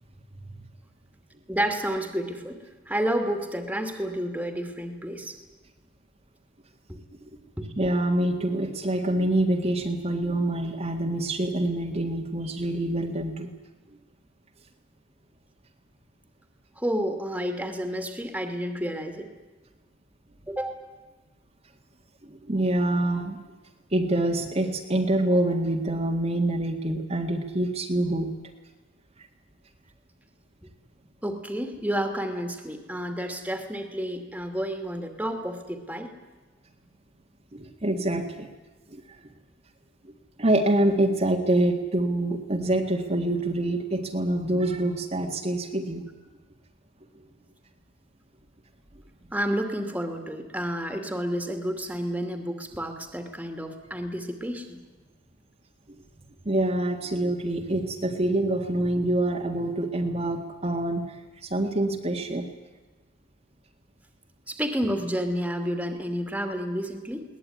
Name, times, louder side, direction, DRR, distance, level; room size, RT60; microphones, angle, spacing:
voice 1, 1.5-5.4 6.9-7.0 7.6-7.7 16.8-19.3 20.5-20.8 30.6-30.7 31.2-36.1 49.3-54.8 64.5-67.2, equal, 10° right, 6 dB, 2.5 m, -30 dB
voice 2, 7.8-13.5 22.3-23.4 23.9-28.3 37.5-38.5 38.9-39.0 40.4-46.1 56.5-62.5, right 1 dB, 35° right, 1 dB, 1.9 m, -26 dB
21.5 x 19.0 x 9.6 m, 1.2 s
head